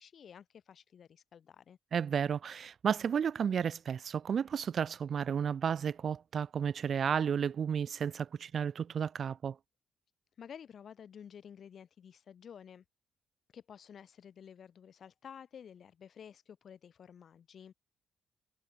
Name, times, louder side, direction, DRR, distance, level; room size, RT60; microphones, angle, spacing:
voice 1, 0.0-1.8 10.4-12.8 13.5-17.7, left 8 dB, 55° left, 0.8 m, -52 dB
voice 2, 1.9-9.6, right 7 dB, 55° right, 0.3 m, -32 dB
cardioid pair, 90°, 0 cm